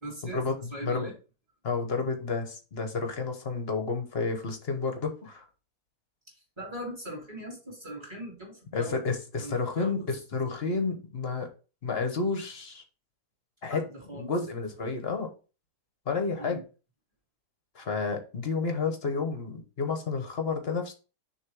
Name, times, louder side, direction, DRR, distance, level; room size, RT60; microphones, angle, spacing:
voice 1, 0.0-1.1 6.3-9.0 9.4-10.1 13.6-14.3 16.4-16.6, right 1 dB, 15° right, -3 dB, 2.8 m, -40 dB
voice 2, 0.8-1.1 1.6-5.4 8.7-11.5 11.8-12.8 13.6-13.8 14.1-15.3 16.1-16.6 17.7-20.9, left 4 dB, 45° left, 5 dB, 1.1 m, -30 dB
6.5 x 3.1 x 4.6 m, 0.34 s
omnidirectional pair, 1.7 m